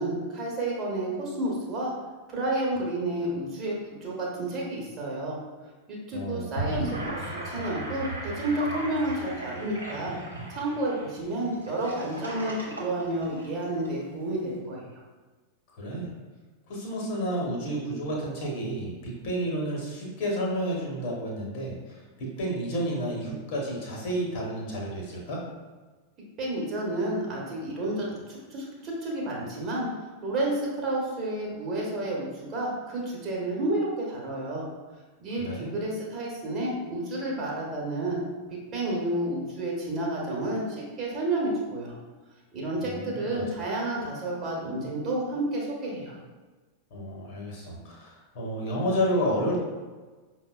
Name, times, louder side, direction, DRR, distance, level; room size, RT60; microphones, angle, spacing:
voice 1, 0.0-1.9 2.3-5.4 5.9-10.2 10.5-14.8 26.4-29.9 30.2-34.7 35.2-38.2 38.5-42.0 42.5-46.1, right 1 dB, 30° right, -4 dB, 1.0 m, -30 dB
voice 2, 6.1-6.5 6.9-7.0 15.8-16.1 16.7-25.4 35.4-35.7 42.8-43.4 46.9-49.6, equal, 50° left, -2 dB, 0.9 m, -31 dB
Gurgling / Sink (filling or washing), 6.4-13.9, right 1 dB, 85° right, 0.8 m, -36 dB
5.3 x 2.1 x 2.3 m, 1.3 s
figure-of-eight pair, 90°, 0 cm